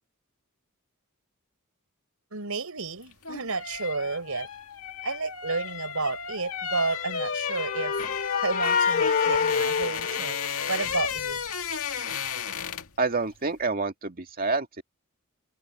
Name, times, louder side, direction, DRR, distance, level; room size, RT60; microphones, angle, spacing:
voice 1, 2.3-4.5 5.0-7.9 8.4-10.4 10.7-11.4, right 3 dB, 75° right, 4.7 m, -31 dB
sound 1, 3.0-13.0 13.3-13.5, left 7 dB, 75° left, 2.2 m, -33 dB
sound 2, 7.0-10.9, left 6 dB, 40° left, 0.6 m, -27 dB
voice 2, 13.0-14.8, right 3 dB, 40° right, 2.2 m, -28 dB
head